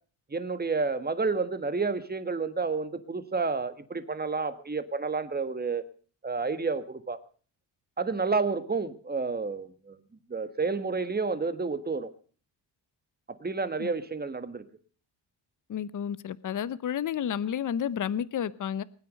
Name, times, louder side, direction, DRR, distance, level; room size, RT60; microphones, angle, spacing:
voice 1, 0.3-5.8 6.2-7.2 8.0-10.0 10.3-12.1 13.3-14.6, right 4 dB, 20° right, 1.6 m, -30 dB
voice 2, 15.7-18.8, left 9 dB, 45° left, 0.8 m, -31 dB
21.0 x 9.7 x 6.5 m
cardioid pair, 100°, 45 cm